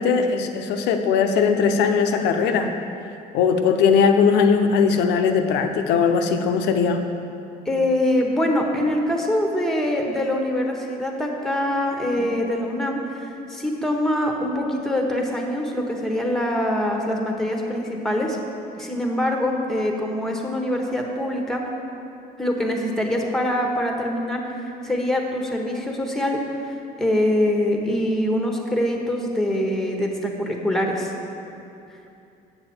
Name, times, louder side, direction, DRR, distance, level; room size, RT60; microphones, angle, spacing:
voice 1, 0.0-2.7 3.3-7.0 12.2-12.3, left 6 dB, 85° left, 6 dB, 0.6 m, -19 dB
voice 2, 7.6-18.4 18.7-21.6 22.4-26.4 27.0-31.1, left 1 dB, ahead, 1 dB, 1.0 m, -24 dB
7.7 x 6.9 x 4.3 m, 2.7 s
cardioid pair, 110°, 17 cm